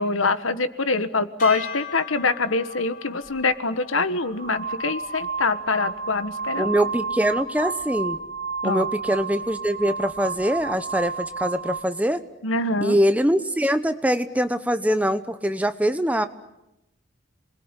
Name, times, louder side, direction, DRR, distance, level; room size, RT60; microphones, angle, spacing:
voice 1, 0.0-6.8 8.6-8.9 12.4-13.0, left 3 dB, 85° left, 12 dB, 1.5 m, -24 dB
sound 1, 1.4-7.7, left 5 dB, 40° left, 4.6 m, -41 dB
sound 2, 3.2-3.4 4.2-11.9, right 5 dB, 50° right, 4.3 m, -31 dB
voice 2, 6.6-8.2 8.6-12.2 12.8-16.3, equal, 5° right, 11 dB, 0.9 m, -23 dB
27.5 x 21.0 x 9.9 m, 0.92 s
head